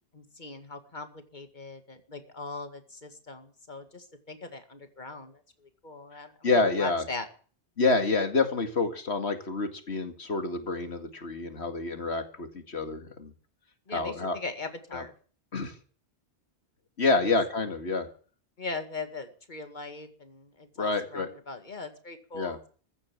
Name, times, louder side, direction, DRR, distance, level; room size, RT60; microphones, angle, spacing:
voice 1, 0.1-5.4 5.8-7.3 13.9-15.1 17.1-17.3 18.6-22.7, left 3 dB, 45° left, 7 dB, 2.2 m, -40 dB
voice 2, 6.4-7.0 7.8-13.3 13.9-14.4 14.9-15.0 15.5-15.7 17.0-18.1 20.8-21.3 22.3-22.6, left 3 dB, 70° left, 7 dB, 2.4 m, -28 dB
15.5 x 11.0 x 7.3 m, 0.42 s
omnidirectional pair, 1.1 m